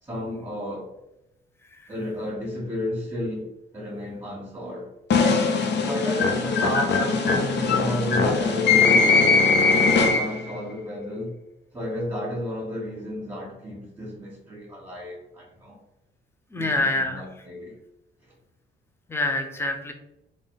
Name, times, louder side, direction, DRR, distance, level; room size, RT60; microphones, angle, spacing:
voice 1, 0.0-0.9 1.9-3.5 3.7-4.9 5.8-9.5 9.9-11.3 11.7-15.8 16.6-17.8 18.3-18.4, left 1 dB, 15° right, -6 dB, 1.5 m, -32 dB
sound 1, 5.1-10.5, left 4 dB, 60° left, 0.7 m, -20 dB
voice 2, 16.5-17.2 19.1-19.9, left 2 dB, 10° left, 4 dB, 0.6 m, -25 dB
3.7 x 2.5 x 3.9 m, 0.87 s
cardioid pair, 90°, 20 cm